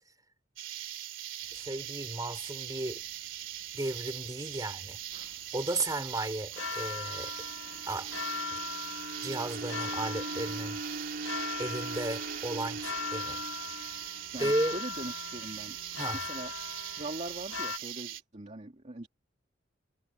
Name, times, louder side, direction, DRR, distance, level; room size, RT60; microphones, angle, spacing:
sound 1, 0.6-18.2, right 12 dB, 85° right, 3.0 m, -41 dB
sound 2, 1.4-17.8, left 6 dB, 75° left, 2.3 m, -40 dB
voice 1, 1.5-3.0 3.7-5.0 5.5-7.3 7.9-8.1 8.5-8.6 9.2-10.8 11.6-13.4 14.4-14.8 16.0-16.2, right 1 dB, 20° right, 4.1 m, -34 dB
sound 3, 6.9-15.1, right 2 dB, 60° right, 4.2 m, -42 dB
voice 2, 14.3-15.8 16.1-16.5 17.0-19.1, right 1 dB, 35° right, 2.2 m, -41 dB
head